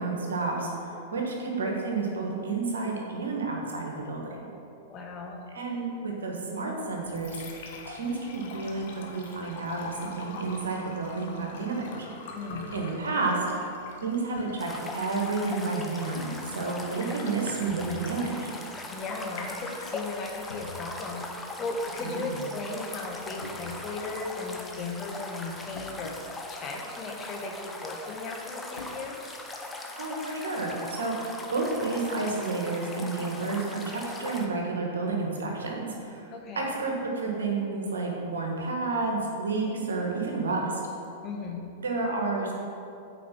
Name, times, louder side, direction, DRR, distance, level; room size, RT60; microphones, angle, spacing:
voice 1, 0.0-4.5 5.5-7.4 7.9-12.1 12.7-13.4 14.0-18.5 22.0-22.2 30.0-36.3 36.5-40.8 41.8-42.5, right 3 dB, 70° right, 0 dB, 1.7 m, -30 dB
voice 2, 4.9-5.4 12.3-12.8 16.7-17.0 18.9-29.3 36.3-36.7 39.6-39.8 41.2-41.7, left 3 dB, 35° left, 1 dB, 1.3 m, -37 dB
Liquid, 6.8-25.8, left 4 dB, 60° left, 1.2 m, -47 dB
sound 1, 12.5-12.8 14.4-14.6 16.1-16.4 17.7-18.0 18.3-18.5 18.9-19.0 20.5-20.8 23.4-24.1 25.7-26.2 27.2-27.3 28.8-29.0, left 3 dB, 80° left, 0.8 m, -43 dB
sound 2, 14.6-34.5, left 2 dB, 10° left, 0.9 m, -40 dB
8.5 x 5.0 x 6.1 m, 2.6 s
figure-of-eight pair, 95°, 0 cm